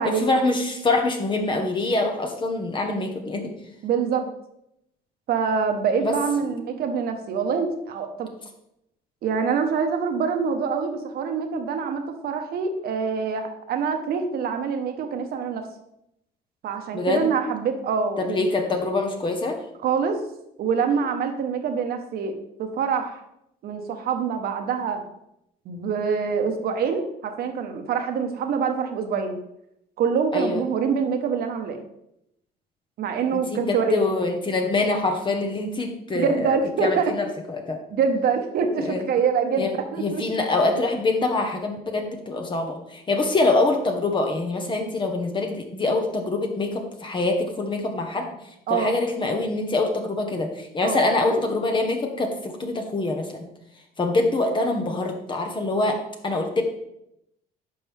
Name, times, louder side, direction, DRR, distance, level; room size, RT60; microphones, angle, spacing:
voice 1, 0.0-3.5 6.0-6.1 6.4-6.6 16.9-17.3 18.2-19.6 30.3-30.6 33.3-36.5 36.8-37.8 38.8-39.1 39.6-39.7 40.0-48.3 48.7-53.5 54.0-56.6, left 2 dB, 30° left, 3 dB, 1.2 m, -25 dB
voice 2, 3.8-4.3 5.3-8.3 9.2-15.7 16.6-18.5 19.8-20.2 20.6-22.3 22.6-23.2 23.6-25.0 25.6-29.4 30.0-31.8 33.0-34.1 36.1-37.1 37.9-40.2 48.7-49.0 50.8-51.0 51.3-51.4, right 6 dB, 65° right, 6 dB, 1.4 m, -25 dB
10.5 x 6.1 x 3.5 m, 0.80 s
cardioid pair, 110°, 17 cm